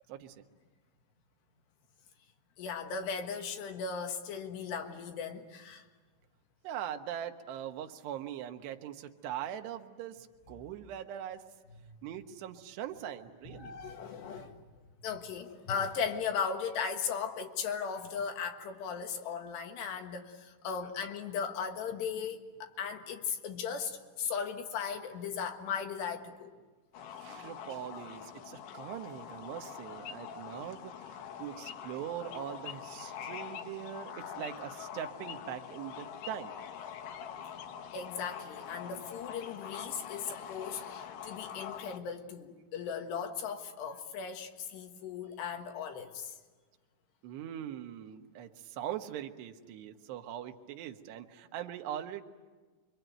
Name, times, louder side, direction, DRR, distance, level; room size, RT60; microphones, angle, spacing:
voice 1, 0.1-0.5 6.6-11.5 12.0-13.8 27.2-31.1 31.4-36.5 47.2-52.2, right 10 dB, 70° right, 6 dB, 3.0 m, -41 dB
voice 2, 2.6-5.8 11.9-12.0 13.5-14.6 15.0-26.6 37.3-46.3, left 6 dB, 65° left, 5 dB, 3.4 m, -37 dB
sound 1, 26.9-42.0, left 8 dB, 85° left, 1.9 m, -44 dB
27.0 x 24.0 x 9.2 m, 1.3 s
omnidirectional pair, 5.7 m